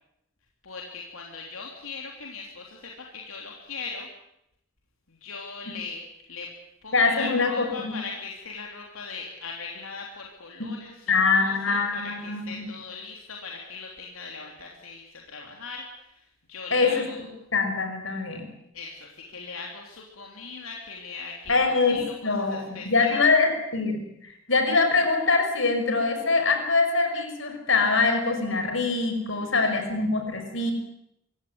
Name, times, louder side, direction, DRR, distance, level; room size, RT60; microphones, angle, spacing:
voice 1, 0.6-4.1 5.1-6.0 6.3-6.5 6.8-17.3 18.7-23.3 29.3-29.6, left 4 dB, 80° left, 0 dB, 3.3 m, -39 dB
voice 2, 6.9-7.9 10.6-10.7 11.1-12.7 16.7-17.0 17.5-18.4 21.5-24.0 24.5-30.7, left 3 dB, 65° left, 5 dB, 5.7 m, -23 dB
25.0 x 16.5 x 9.6 m, 0.83 s
head